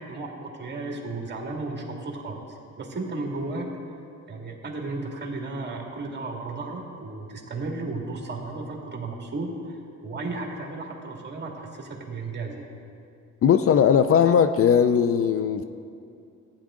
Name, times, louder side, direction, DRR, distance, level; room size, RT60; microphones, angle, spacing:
voice 1, 0.0-3.7 4.3-12.7, right 3 dB, 35° right, 0 dB, 2.1 m, -34 dB
voice 2, 13.4-15.6, left 7 dB, 50° left, 10 dB, 0.4 m, -19 dB
15.0 x 10.0 x 3.7 m, 2.5 s
cardioid pair, 90°, 30 cm